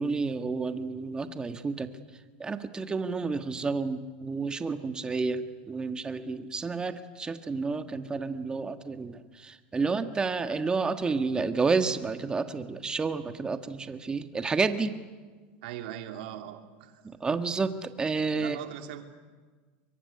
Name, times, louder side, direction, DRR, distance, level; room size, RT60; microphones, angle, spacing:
voice 1, 0.0-1.9 2.4-14.9 17.0-18.6, right 4 dB, 15° right, 8 dB, 1.5 m, -30 dB
voice 2, 15.6-17.0 17.3-17.4 18.4-19.0, right 11 dB, 75° right, 5 dB, 2.9 m, -40 dB
24.0 x 22.5 x 9.6 m, 1.4 s
supercardioid pair, 135°, 5 cm